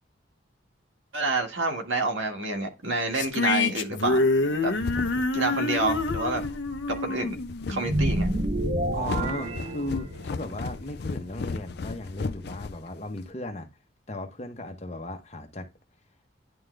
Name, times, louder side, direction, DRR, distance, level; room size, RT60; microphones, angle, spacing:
voice 1, 1.1-4.3 4.6-4.7 5.3-6.4 6.9-7.4 7.7-8.3, right 2 dB, 80° right, 1.9 m, -28 dB
sound 1, 3.1-8.5, left 3 dB, 75° left, 0.8 m, -27 dB
sound 2, 4.4-13.3, left 4 dB, 55° left, 0.4 m, -36 dB
sound 3, 7.8-10.4, right 1 dB, 35° right, 0.7 m, -28 dB
voice 2, 8.9-13.7 14.1-15.7, left 1 dB, 35° left, 1.1 m, -36 dB
10.5 x 3.8 x 3.3 m
head